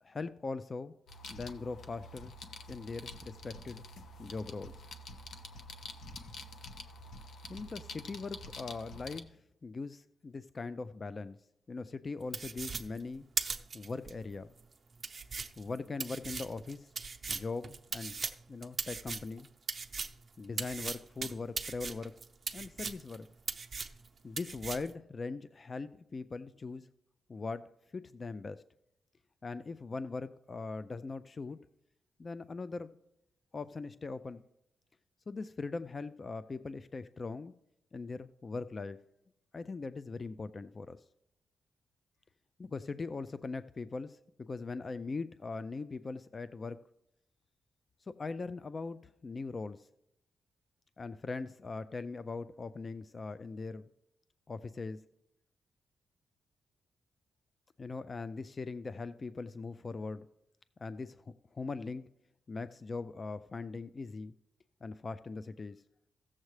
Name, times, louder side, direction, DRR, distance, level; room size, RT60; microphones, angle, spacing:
voice 1, 0.0-0.9 1.3-2.3 2.7-3.8 4.2-4.8 7.5-9.4 9.6-11.4 11.7-13.3 13.7-14.5 15.6-16.9 17.3-18.2 18.5-19.5 20.4-22.1 22.5-23.3 24.2-26.9 27.3-27.7 27.9-28.6 29.4-31.6 32.2-33.0 33.5-34.4 35.3-37.5 37.9-39.0 39.5-41.0 42.6-46.8 48.0-49.9 51.0-53.9 54.5-55.0 57.8-60.3 60.8-62.0 62.5-64.3 64.8-65.8, left 4 dB, 35° left, 13 dB, 0.3 m, -40 dB
sound 1, 1.1-9.2, left 2 dB, 75° left, 0.9 m, -47 dB
sound 2, 12.3-14.1 14.6-14.7 15.0-20.2 20.6-23.2 23.5-24.1 24.4-24.9, right 5 dB, 40° right, 0.7 m, -38 dB
16.0 x 7.3 x 3.2 m, 0.81 s
cardioid pair, 105°, 0 cm